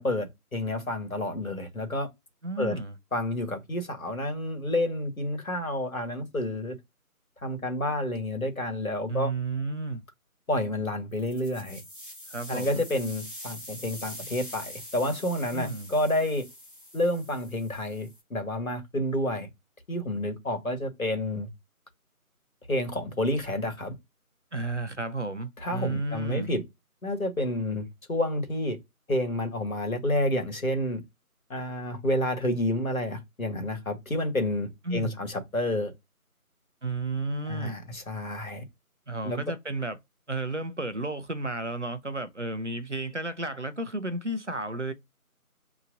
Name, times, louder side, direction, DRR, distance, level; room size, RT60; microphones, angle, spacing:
voice 1, 0.0-2.1 2.6-2.8 3.1-6.8 7.4-9.3 10.5-11.8 12.5-16.5 16.9-19.5 19.9-21.5 22.7-23.9 25.6-26.6 27.0-28.8 29.1-31.0 31.5-35.9 37.5-38.6 39.2-39.4, left 1 dB, 65° left, 1.3 m, -29 dB
voice 2, 2.4-3.0 9.1-10.0 12.3-12.8 15.5-15.9 24.5-26.5 34.9-35.2 36.8-37.8 39.1-40.0 40.3-44.9, right 2 dB, 55° right, 0.5 m, -32 dB
sound 1, 11.1-18.2, equal, 35° right, 1.0 m, -44 dB
2.7 x 2.6 x 2.5 m
figure-of-eight pair, 175°, 44 cm